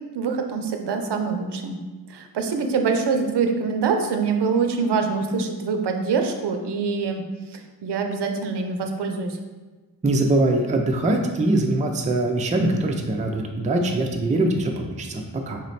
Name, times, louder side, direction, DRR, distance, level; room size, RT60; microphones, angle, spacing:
voice 1, 0.1-1.8 2.1-7.2 7.5-9.4, right 5 dB, 70° right, 4 dB, 0.6 m, -24 dB
voice 2, 10.0-15.6, right 2 dB, 20° right, 2 dB, 0.4 m, -22 dB
4.0 x 3.1 x 4.1 m, 1.3 s
wide cardioid pair, 135°, 42 cm